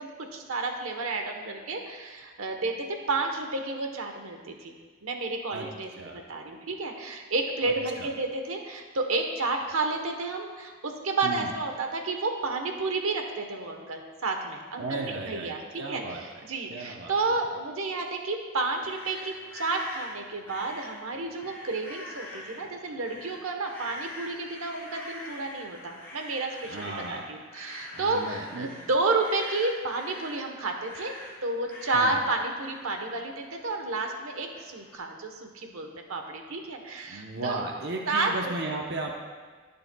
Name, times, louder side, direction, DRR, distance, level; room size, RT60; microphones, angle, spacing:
voice 1, 0.0-4.7 5.0-15.6 15.9-31.1 31.4-37.6 38.1-38.7, right 3 dB, 70° right, 3 dB, 1.1 m, -31 dB
voice 2, 14.8-16.2 16.7-17.1 26.7-27.3 27.9-28.7 31.9-32.2 37.1-39.1, right 2 dB, 50° right, 1 dB, 0.8 m, -35 dB
sound 1, 18.5-34.9, left 1 dB, 10° left, 2.8 m, -45 dB
19.0 x 6.8 x 2.3 m, 1.5 s
head